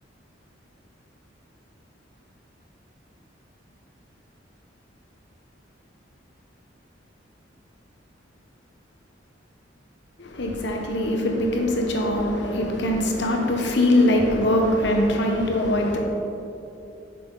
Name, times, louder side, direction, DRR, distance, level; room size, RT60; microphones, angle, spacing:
voice 1, 10.2-16.0, left 1 dB, 60° left, 1 dB, 0.9 m, -22 dB
7.7 x 6.0 x 3.8 m, 2.8 s
head